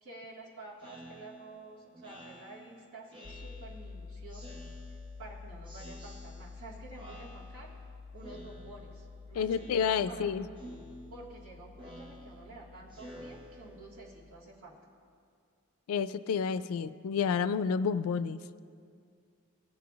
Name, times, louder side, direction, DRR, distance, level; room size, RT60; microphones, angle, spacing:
voice 1, 0.0-4.5 5.2-7.7 8.1-10.4 11.1-14.8, right 2 dB, 80° right, -5 dB, 1.8 m, -50 dB
Speech synthesizer, 0.8-3.9 4.3-5.3 5.7-6.7 7.0-7.9 8.2-9.1 9.5-10.3 10.6-14.1, equal, 25° right, 0.9 m, -51 dB
sound 1, 3.2-14.3, left 4 dB, 30° left, 0.8 m, -49 dB
voice 2, 9.4-10.5 15.9-18.4, left 6 dB, 90° left, 14 dB, 0.3 m, -30 dB
19.5 x 7.7 x 2.4 m, 2.2 s
head